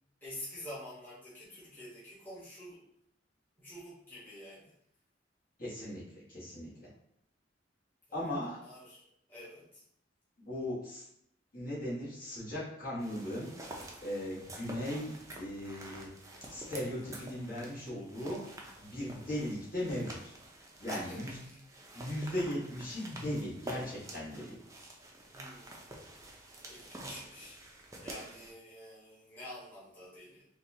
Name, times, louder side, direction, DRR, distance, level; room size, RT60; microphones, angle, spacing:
voice 1, 0.2-2.9 3.6-4.7 8.1-8.2 8.6-9.0 9.3-9.8 21.0-21.6 25.3-26.0 26.6-27.6 28.0-30.5, left 1 dB, 10° left, -9 dB, 1.0 m, -48 dB
voice 2, 5.6-6.9 8.1-8.6 10.4-11.1 11.5-13.5 14.0-16.1 16.5-18.4 18.8-20.3 20.8-21.4 21.9-24.6, left 1 dB, 50° left, -7 dB, 1.3 m, -38 dB
sound 1, 13.0-28.5, right 1 dB, 15° right, 0.5 m, -48 dB
3.9 x 2.3 x 2.7 m, 0.72 s
head